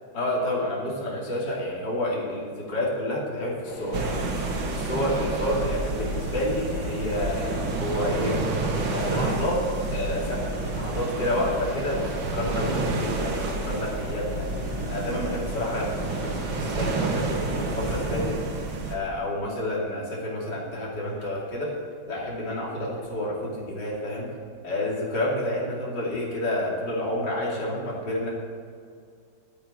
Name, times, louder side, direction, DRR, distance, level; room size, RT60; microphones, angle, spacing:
voice 1, 0.1-4.4 4.7-8.4 8.9-9.6 9.9-14.5 14.9-18.4 18.7-21.7 22.1-24.3 24.6-28.3, left 1 dB, 65° left, -4 dB, 3.5 m, -29 dB
sound 1, 3.6-18.3, left 3 dB, 80° left, 2.7 m, -40 dB
sound 2, 3.9-19.0, right 3 dB, 85° right, 2.2 m, -29 dB
11.0 x 9.0 x 8.1 m, 2.2 s
omnidirectional pair, 2.1 m